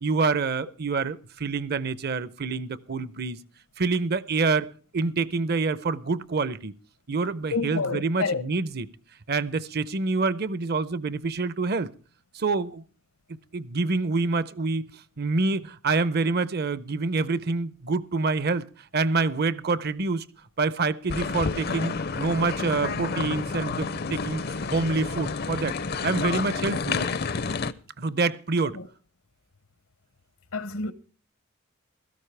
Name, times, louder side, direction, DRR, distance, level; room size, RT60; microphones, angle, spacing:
voice 1, 0.0-3.4 3.8-6.7 7.1-8.9 9.3-11.9 12.3-12.8 13.5-14.9 15.2-18.7 18.9-20.3 20.6-25.8 26.0-27.1 28.0-28.8, right 3 dB, 50° right, 0.6 m, -27 dB
voice 2, 7.5-8.4 28.7-28.9 30.5-30.9, left 4 dB, 80° left, 1.0 m, -28 dB
sound 1, 21.1-27.7, left 4 dB, 45° left, 0.5 m, -30 dB
17.0 x 13.5 x 3.3 m
head